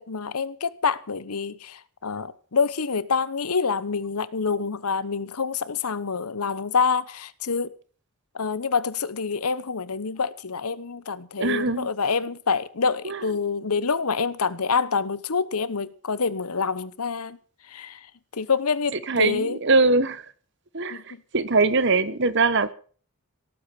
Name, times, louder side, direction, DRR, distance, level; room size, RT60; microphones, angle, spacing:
voice 1, 0.0-7.7 8.3-17.4 17.7-18.1 18.3-19.6 20.9-21.2, left 5 dB, 90° left, 1.0 m, -27 dB
voice 2, 11.4-11.9 13.0-13.2 19.1-20.3 20.7-22.7, right 3 dB, 55° right, 1.1 m, -22 dB
18.0 x 8.6 x 7.6 m
head